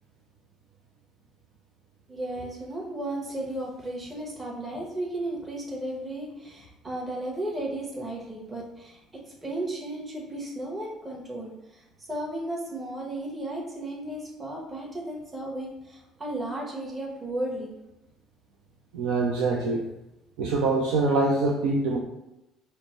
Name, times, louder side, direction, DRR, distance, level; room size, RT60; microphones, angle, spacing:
voice 1, 2.1-9.0 9.4-11.8 12.1-17.7, right 1 dB, 25° right, -2 dB, 1.0 m, -34 dB
voice 2, 18.9-19.8 20.4-22.0, right 3 dB, 65° right, -1 dB, 0.4 m, -24 dB
5.0 x 2.1 x 3.0 m, 0.93 s
figure-of-eight pair, 55°, 0 cm